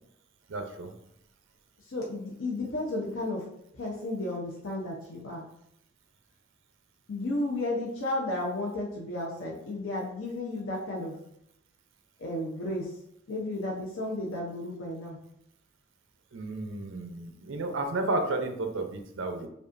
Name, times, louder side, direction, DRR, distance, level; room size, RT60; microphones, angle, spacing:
voice 1, 0.5-0.9 16.3-19.5, right 2 dB, 70° right, 6 dB, 0.6 m, -32 dB
voice 2, 1.8-3.5 3.7-5.5 7.1-11.2 12.2-12.9 13.3-15.2, left 1 dB, 75° left, -2 dB, 0.7 m, -33 dB
5.1 x 2.4 x 2.5 m, 0.75 s
head